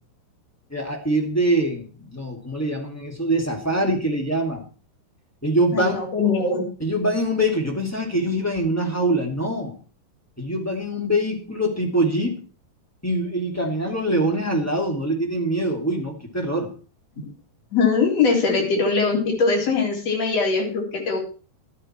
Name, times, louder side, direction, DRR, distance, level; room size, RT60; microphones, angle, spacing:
voice 1, 0.7-4.6 5.4-6.0 6.8-9.7 10.4-12.4 13.0-16.7 18.5-18.6, right 1 dB, 5° left, 1 dB, 2.2 m, -24 dB
voice 2, 5.7-6.7 17.7-21.2, left 4 dB, 40° left, 0 dB, 4.7 m, -21 dB
13.5 x 11.0 x 4.6 m, 0.38 s
omnidirectional pair, 4.6 m